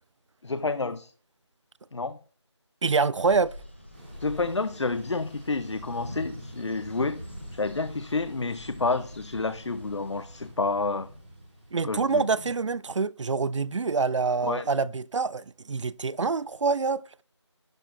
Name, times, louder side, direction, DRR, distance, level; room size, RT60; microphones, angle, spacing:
voice 1, 0.4-1.1 1.9-2.2 4.2-7.2 7.5-11.1 11.8-12.3 14.4-14.7, left 3 dB, 70° left, 0.5 m, -29 dB
voice 2, 2.8-3.5 11.7-17.0, right 4 dB, 80° right, 0.4 m, -26 dB
sound 1, 3.2-10.5, equal, 25° left, 0.8 m, -48 dB
Thunder / Rain, 3.9-12.7, equal, 25° right, 2.0 m, -45 dB
11.5 x 4.5 x 2.4 m
figure-of-eight pair, 175°, 16 cm